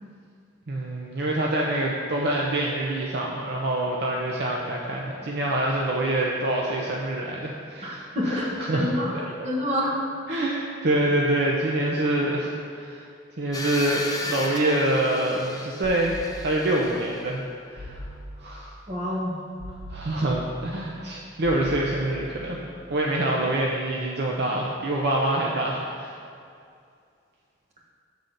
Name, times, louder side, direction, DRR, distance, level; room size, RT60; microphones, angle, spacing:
voice 1, 0.7-8.9 10.3-13.1 13.4-17.4 17.7-18.0 18.4-18.7 19.9-22.6 22.9-26.2, right 1 dB, 60° right, -2 dB, 0.7 m, -26 dB
voice 2, 7.8-10.0 10.3-10.4 18.9-19.4, left 1 dB, 40° right, -3 dB, 1.3 m, -28 dB
sound 1, 13.5-17.3, left 2 dB, 20° left, 0.6 m, -35 dB
sound 2, 15.8-16.8 17.8-18.7 19.6-20.7 21.4-22.5, equal, 80° right, 1.8 m, -40 dB
7.2 x 3.9 x 6.6 m, 2.4 s
head